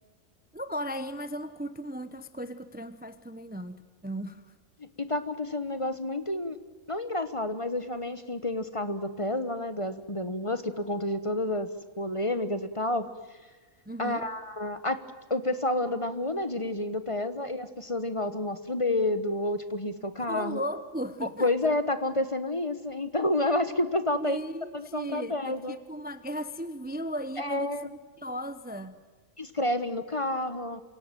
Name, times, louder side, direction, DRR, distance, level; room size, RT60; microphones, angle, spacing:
voice 1, 0.5-4.5 13.9-14.3 20.2-21.5 24.1-27.8 28.2-29.0, equal, 10° right, 12 dB, 0.9 m, -36 dB
voice 2, 5.0-6.6 6.9-11.7 12.0-13.1 14.0-15.0 15.3-20.6 21.2-24.4 24.7-25.8 27.4-27.9 29.4-30.8, left 1 dB, 25° left, 11 dB, 1.3 m, -29 dB
27.5 x 17.5 x 9.1 m, 1.4 s
omnidirectional pair, 1.3 m